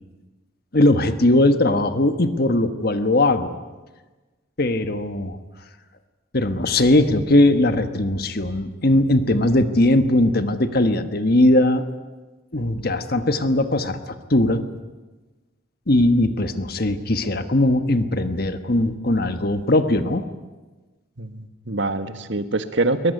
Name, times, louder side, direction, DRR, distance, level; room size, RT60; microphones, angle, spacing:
voice 1, 0.7-3.5 4.6-5.4 6.3-11.8 12.5-14.6 15.9-20.3, left 1 dB, 50° left, 9 dB, 1.4 m, -19 dB
voice 2, 21.2-23.1, right 2 dB, 60° right, 9 dB, 1.6 m, -24 dB
23.0 x 19.5 x 9.7 m, 1.2 s
head